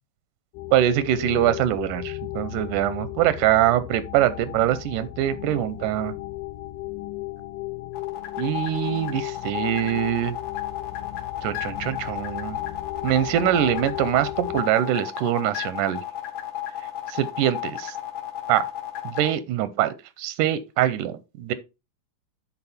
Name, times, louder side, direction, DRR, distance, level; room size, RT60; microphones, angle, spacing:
sound 1, 0.5-14.6, left 17 dB, 90° left, 2.4 m, -35 dB
voice 1, 0.7-6.1 8.4-10.3 11.4-12.6 13.0-16.0 17.1-17.9 18.5-18.6 19.1-21.5, right 12 dB, 85° right, 2.1 m, -23 dB
sound 2, 7.9-19.3, left 12 dB, 60° left, 2.6 m, -33 dB
9.8 x 4.4 x 4.1 m
omnidirectional pair, 3.7 m